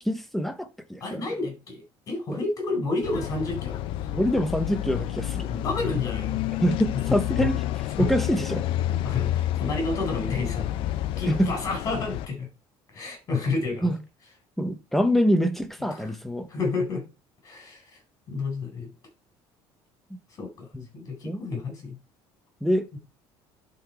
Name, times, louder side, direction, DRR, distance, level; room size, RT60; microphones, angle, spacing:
voice 1, 0.1-1.2 2.3-2.4 4.1-5.5 6.6-7.6 8.0-8.7 11.3-11.5 13.8-14.0 14.6-16.5 20.7-20.8 21.2-21.4 22.6-22.9, equal, ahead, 0.8 m, -25 dB
voice 2, 1.0-3.9 5.5-6.4 6.9-7.2 8.0-8.1 9.0-10.8 11.2-12.5 12.9-13.9 15.9-16.2 16.5-17.0 17.4-17.8 18.3-18.9 20.4-20.7 20.9-21.9 22.9-23.0, left 3 dB, 35° left, 4.6 m, -30 dB
sound 1, 3.0-12.3, left 13 dB, 60° left, 0.5 m, -29 dB
11.0 x 4.0 x 4.6 m
cardioid pair, 150°, 10 cm